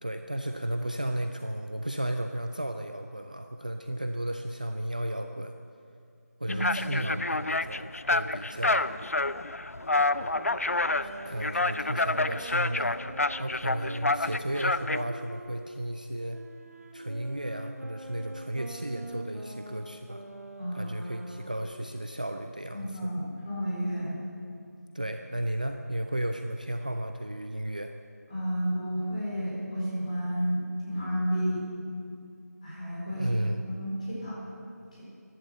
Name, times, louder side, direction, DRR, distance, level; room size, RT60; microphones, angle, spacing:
voice 1, 0.0-5.5 6.4-8.8 10.2-10.3 11.0-13.0 13.4-16.4 16.9-20.2 20.7-22.9 24.9-27.9 33.1-33.6, right 1 dB, 30° right, 6 dB, 0.4 m, -34 dB
sound 1, 6.5-15.0, left 2 dB, 55° left, 0.5 m, -28 dB
Wind instrument woodwind instrument, 9.7-15.5 16.3-21.7, right 1 dB, 60° right, 1.4 m, -44 dB
voice 2, 20.6-21.3 22.7-24.2 28.3-31.6 32.6-33.3 33.6-34.4 34.9-35.0, equal, 25° left, -7 dB, 4.5 m, -31 dB
15.0 x 11.5 x 6.7 m, 2.3 s
figure-of-eight pair, 175°, 9 cm